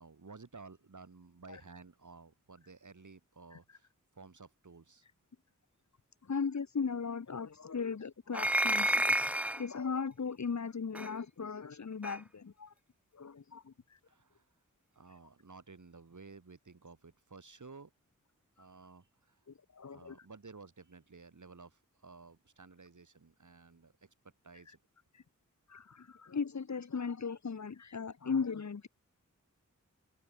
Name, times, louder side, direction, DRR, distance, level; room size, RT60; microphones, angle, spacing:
voice 1, 0.0-5.0 14.0-14.5 14.9-17.9 18.6-19.4 19.9-24.8, right 4 dB, 65° right, 6.8 m, -54 dB
voice 2, 6.2-12.7 13.1-14.0 18.6-18.7 19.5-20.3 24.7-24.8 25.1-25.2 25.7-28.9, left 5 dB, 60° left, 1.3 m, -38 dB
sound 1, 8.3-9.7 10.9-11.1 12.0-12.2, right 1 dB, 5° right, 0.5 m, -30 dB
open air
wide cardioid pair, 50°, 32 cm